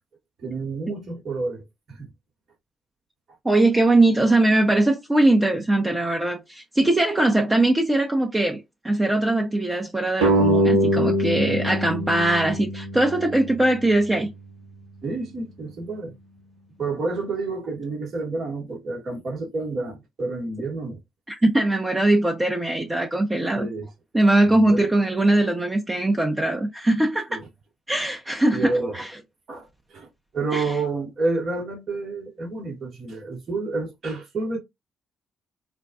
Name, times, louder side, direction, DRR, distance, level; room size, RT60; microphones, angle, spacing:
voice 1, 0.4-2.1 15.0-16.1 16.8-21.0 23.5-23.9 24.5-24.9 27.3-27.4 28.5-29.0 29.5-30.1 30.3-34.6, right 3 dB, 55° right, 1.7 m, -29 dB
voice 2, 3.4-8.6 8.8-14.3 21.3-23.7 24.1-27.4 27.9-29.1 30.5-30.6, right 2 dB, 20° right, 0.8 m, -21 dB
sound 1, 10.2-13.4, equal, 80° right, 1.0 m, -22 dB
4.4 x 2.2 x 2.7 m
hypercardioid pair, 45°, 0 cm